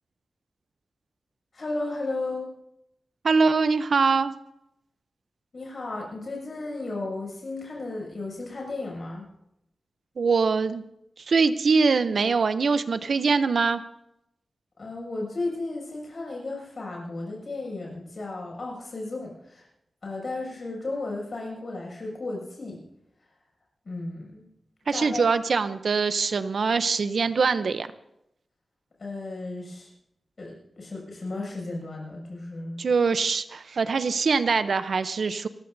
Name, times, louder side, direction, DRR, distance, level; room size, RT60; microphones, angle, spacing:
voice 1, 1.5-2.5 5.5-9.3 14.8-19.7 20.0-22.8 23.8-24.5 24.9-25.3 29.0-29.9 30.4-32.9, left 2 dB, 50° left, -1 dB, 6.8 m, -34 dB
voice 2, 3.2-4.3 10.2-10.8 11.2-13.8 24.9-27.9 32.8-35.5, right 4 dB, 65° right, 12 dB, 0.7 m, -23 dB
28.5 x 14.5 x 2.7 m, 0.82 s
wide cardioid pair, 135°, 0 cm